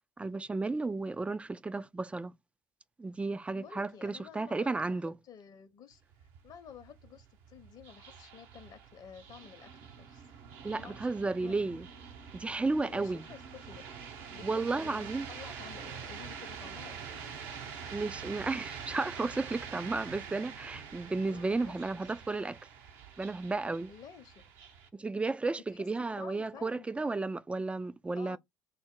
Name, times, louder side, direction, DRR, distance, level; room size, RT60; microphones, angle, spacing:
voice 1, 0.2-2.3 3.0-5.2 10.6-11.9 12.3-13.2 14.4-15.3 17.9-22.6 23.2-23.9 24.9-28.4, right 3 dB, 10° right, 0.4 m, -33 dB
voice 2, 3.5-6.0 6.4-10.3 10.7-11.7 12.8-13.8 14.3-17.2 17.5-17.8 19.0-19.2 21.3-22.0 23.9-24.5 25.5-25.9 26.2-27.2 28.1-28.4, left 7 dB, 40° left, 0.8 m, -52 dB
sound 1, 5.9-24.9, right 6 dB, 60° right, 0.8 m, -46 dB
5.6 x 2.1 x 3.6 m
figure-of-eight pair, 60°, 11 cm